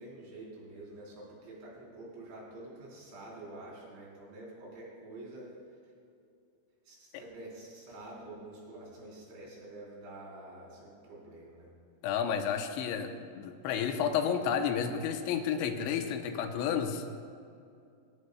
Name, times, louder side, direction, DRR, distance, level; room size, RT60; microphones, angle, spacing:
voice 1, 0.0-5.5 6.9-11.7, right 2 dB, 80° right, -5 dB, 6.5 m, -47 dB
voice 2, 12.0-17.1, left 7 dB, 90° left, 5 dB, 3.1 m, -31 dB
20.0 x 18.0 x 2.3 m, 2.5 s
omnidirectional pair, 5.1 m